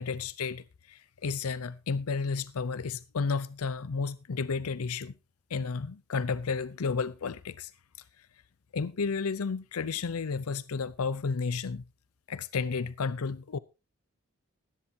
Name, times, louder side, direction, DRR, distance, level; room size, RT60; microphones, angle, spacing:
voice 1, 0.0-5.1 5.5-7.7 8.7-11.8 12.3-13.6, left 5 dB, 85° left, 0.6 m, -32 dB
17.5 x 12.5 x 2.8 m
head